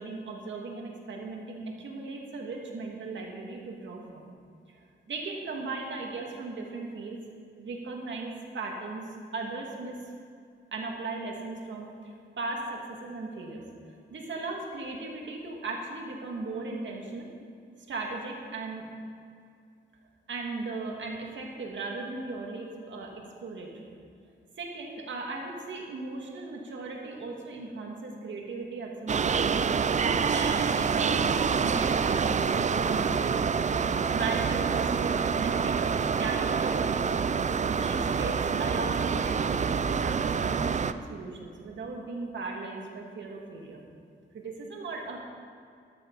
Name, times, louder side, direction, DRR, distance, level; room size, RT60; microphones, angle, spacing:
voice 1, 0.0-4.3 5.1-7.2 7.6-9.1 9.3-10.0 10.7-13.6 14.1-17.3 17.9-18.9 20.3-23.9 24.6-29.4 30.0-33.4 34.1-37.1 37.7-43.8 44.3-45.2, right 3 dB, 70° right, 0 dB, 2.1 m, -37 dB
sound 1, 29.1-40.9, right 6 dB, 40° right, 0.4 m, -27 dB
12.5 x 12.5 x 4.0 m, 2.3 s
cardioid pair, 95°, 20 cm